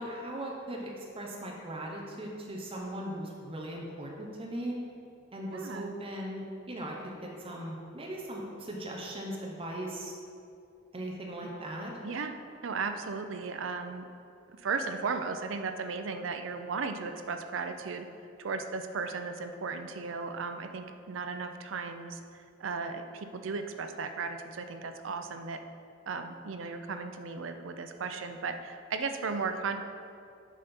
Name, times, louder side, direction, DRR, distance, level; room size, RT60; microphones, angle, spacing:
voice 1, 0.0-4.8 5.3-10.1 10.9-12.0, right 1 dB, 30° right, -1 dB, 0.8 m, -39 dB
voice 2, 5.5-5.9 12.0-12.4 12.6-14.1 14.5-18.1 18.4-22.2 22.6-25.6 26.1-29.8, right 4 dB, 70° right, 7 dB, 0.5 m, -35 dB
7.4 x 4.3 x 5.3 m, 2.5 s
head